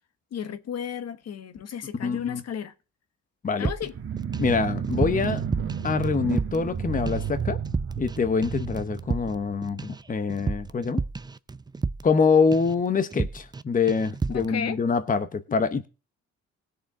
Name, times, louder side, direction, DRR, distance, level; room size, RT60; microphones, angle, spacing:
voice 1, 0.3-2.7 3.6-3.9 14.3-14.8, left 8 dB, 55° left, 1.2 m, -33 dB
voice 2, 2.0-2.4 3.4-3.7 4.4-5.4 5.8-7.6 8.0-11.0 12.0-15.9, left 5 dB, 25° left, 0.9 m, -25 dB
sound 1, 3.6-4.6 4.8-6.8 7.1-7.4 7.6-8.2 8.4-12.2 12.5-12.8 13.1-13.6 13.9-14.5, right 4 dB, 15° right, 0.4 m, -32 dB
sound 2, 3.9-9.9, right 7 dB, 45° right, 1.5 m, -31 dB
19.0 x 6.7 x 3.6 m
cardioid pair, 90°, 30 cm